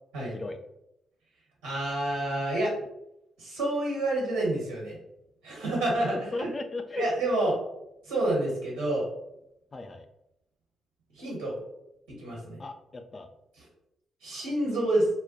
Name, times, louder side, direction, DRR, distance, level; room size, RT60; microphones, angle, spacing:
voice 1, 1.6-2.7 3.4-5.0 5.4-6.5 7.0-7.6 8.1-9.1 11.1-11.5 12.1-12.6 14.2-15.1, right 1 dB, 85° right, -3 dB, 1.1 m, -28 dB
voice 2, 6.1-7.0 9.7-10.1 12.6-13.3, left 2 dB, 35° left, 6 dB, 0.4 m, -36 dB
2.2 x 2.1 x 3.8 m, 0.83 s
hypercardioid pair, 45°, 0 cm